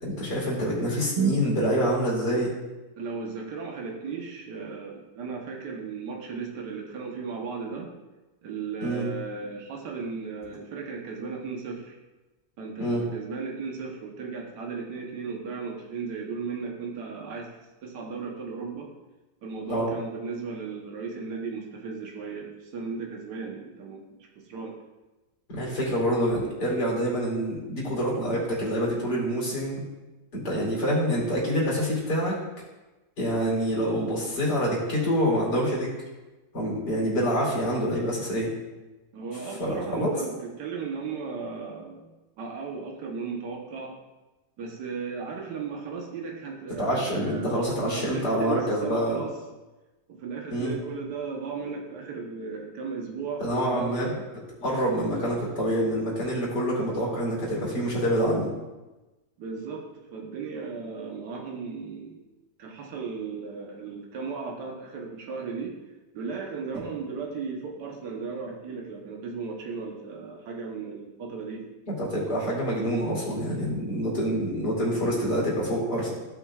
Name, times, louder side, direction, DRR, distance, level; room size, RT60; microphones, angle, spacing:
voice 1, 0.0-2.5 8.8-9.1 12.8-13.0 19.7-19.9 25.5-29.8 30.3-32.4 33.2-35.9 36.5-38.5 39.6-40.1 46.8-49.2 50.5-50.7 53.4-54.1 54.6-58.5 72.0-76.1, equal, 70° left, -5 dB, 3.1 m, -26 dB
voice 2, 3.0-7.9 8.4-12.0 12.6-17.5 17.8-18.9 19.4-24.7 39.1-42.0 42.4-43.9 44.6-49.3 50.1-54.2 59.4-62.2 62.6-65.7 66.1-71.7, right 5 dB, 75° right, 0 dB, 1.6 m, -36 dB
15.0 x 5.7 x 2.4 m, 1.1 s
omnidirectional pair, 1.8 m